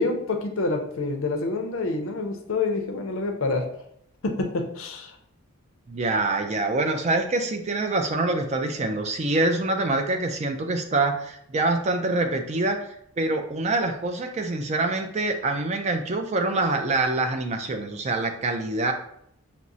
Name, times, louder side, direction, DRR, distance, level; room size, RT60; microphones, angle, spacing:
voice 1, 0.0-3.7 4.2-5.1, left 3 dB, 60° left, 4 dB, 0.5 m, -27 dB
voice 2, 5.9-12.9 13.2-18.9, right 2 dB, 30° right, 5 dB, 0.3 m, -25 dB
5.7 x 2.0 x 2.6 m, 0.70 s
head